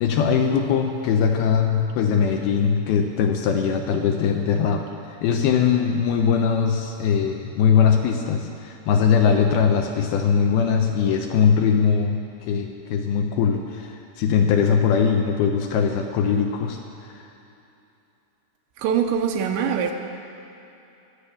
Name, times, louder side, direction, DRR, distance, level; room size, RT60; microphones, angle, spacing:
voice 1, 0.0-12.2 12.5-17.2, left 7 dB, 80° left, 2 dB, 2.3 m, -21 dB
voice 2, 18.8-19.9, right 7 dB, 80° right, 4 dB, 3.0 m, -23 dB
23.0 x 8.3 x 7.0 m, 2.8 s
omnidirectional pair, 5.4 m